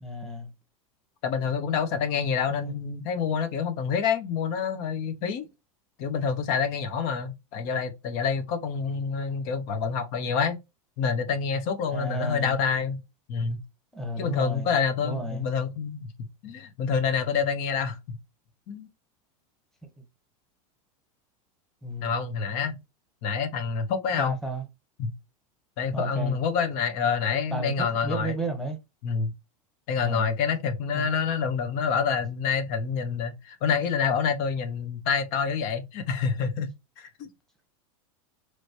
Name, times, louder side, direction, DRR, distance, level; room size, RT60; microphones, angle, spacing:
voice 1, 0.0-0.5 2.5-2.7 11.9-12.6 13.9-15.5 21.8-22.2 24.2-24.6 25.9-26.4 27.5-28.8 30.0-30.2 30.9-31.1, right 1 dB, 5° left, 1.1 m, -32 dB
voice 2, 1.2-5.5 6.0-10.6 11.0-13.0 13.3-13.6 14.2-18.2 18.7-18.9 22.0-22.8 23.2-24.3 25.0-25.1 25.8-28.4 29.0-29.3 29.9-36.7 37.0-37.3, left 6 dB, 55° left, 0.9 m, -27 dB
3.2 x 3.0 x 2.6 m
supercardioid pair, 120°, 18 cm